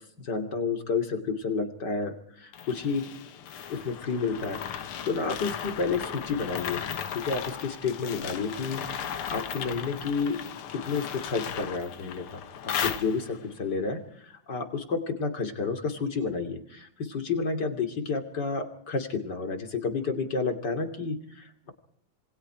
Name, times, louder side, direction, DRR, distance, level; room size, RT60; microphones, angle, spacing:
voice 1, 0.2-3.0 3.7-6.8 7.1-10.4 10.7-21.7, left 4 dB, 50° left, 7 dB, 3.3 m, -31 dB
sound 1, 2.5-13.5, left 8 dB, 85° left, 2.2 m, -36 dB
27.0 x 24.0 x 4.9 m, 0.66 s
omnidirectional pair, 2.3 m